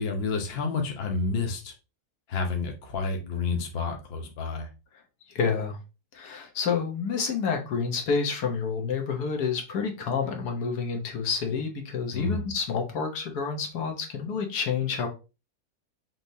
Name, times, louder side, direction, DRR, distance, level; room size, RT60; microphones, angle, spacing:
voice 1, 0.0-1.7 2.3-4.7 12.1-12.4, left 4 dB, 50° left, 4 dB, 1.0 m, -29 dB
voice 2, 5.3-5.8 6.1-15.1, left 5 dB, 85° left, 3 dB, 1.5 m, -29 dB
5.7 x 3.3 x 2.7 m, 0.29 s
omnidirectional pair, 1.6 m